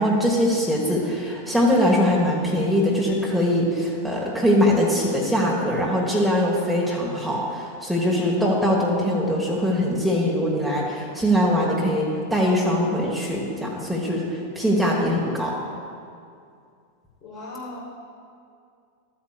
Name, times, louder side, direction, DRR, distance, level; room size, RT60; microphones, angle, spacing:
voice 1, 0.0-15.5, equal, ahead, -4 dB, 1.4 m, -22 dB
voice 2, 17.2-17.8, left 2 dB, 40° left, -5 dB, 1.4 m, -38 dB
14.0 x 8.4 x 2.4 m, 2.4 s
figure-of-eight pair, 90°, 0 cm